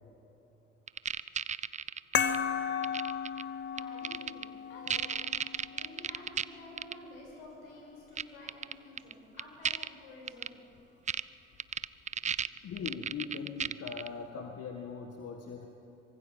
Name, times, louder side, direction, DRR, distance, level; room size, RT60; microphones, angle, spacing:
sound 1, 0.9-2.4 2.8-3.4 3.8-4.4 4.9-6.4 6.8-6.9 8.2-8.3 8.5-9.1 9.4-9.9 10.3-10.5 11.1-11.2 11.6-14.1, right 7 dB, 25° right, 0.5 m, -33 dB
sound 2, 2.1-7.2, left 7 dB, 40° left, 1.0 m, -35 dB
voice 1, 3.7-5.3 5.7-10.8, left 1 dB, 80° left, -1 dB, 6.3 m, -51 dB
voice 2, 12.6-15.7, left 5 dB, 55° left, 3 dB, 1.9 m, -40 dB
24.5 x 22.5 x 5.8 m, 2.8 s
hypercardioid pair, 55°, 29 cm